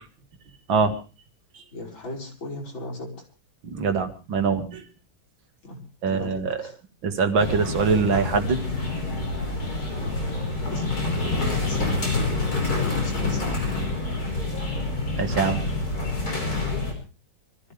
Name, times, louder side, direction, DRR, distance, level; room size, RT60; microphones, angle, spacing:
voice 1, 1.7-3.2 5.6-6.8 10.0-10.3 10.7-10.8 11.7-12.0 12.6-13.6, left 2 dB, 85° left, 0 dB, 5.4 m, -38 dB
voice 2, 3.6-4.8 6.0-6.6 7.0-8.6 15.2-15.7, right 5 dB, 90° right, 7 dB, 2.6 m, -23 dB
sound 1, 7.4-16.9, left 2 dB, 50° left, 5.7 m, -27 dB
25.0 x 14.5 x 3.4 m, 0.33 s
omnidirectional pair, 2.1 m